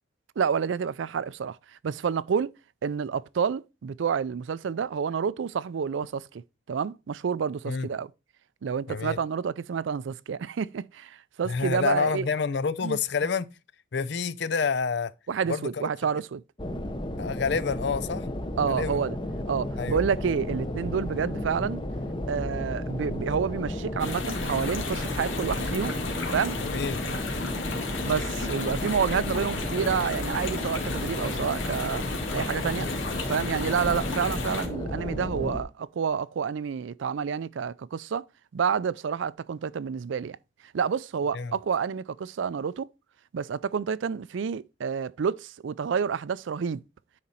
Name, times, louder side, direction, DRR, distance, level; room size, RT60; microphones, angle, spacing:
voice 1, 0.4-1.6 1.8-2.5 2.8-6.4 6.7-8.1 8.6-12.3 12.8-13.0 15.3-16.4 18.6-19.2 19.5-21.8 22.3-26.0 26.3-26.6 28.0-32.0 32.3-32.9 33.3-38.3 38.5-40.4 40.7-42.9 43.3-46.8, right 6 dB, 70° right, 0.4 m, -29 dB
voice 2, 8.9-9.2 11.4-13.5 13.9-15.1 15.5-15.9 17.2-18.3 18.7-19.0 19.8-20.0 26.6-27.0 41.3-41.5, left 5 dB, 60° left, 0.5 m, -28 dB
sound 1, 16.6-35.6, left 1 dB, 25° left, 0.8 m, -33 dB
sound 2, 24.0-34.7, left 4 dB, 85° left, 2.0 m, -34 dB
9.9 x 4.2 x 4.2 m
head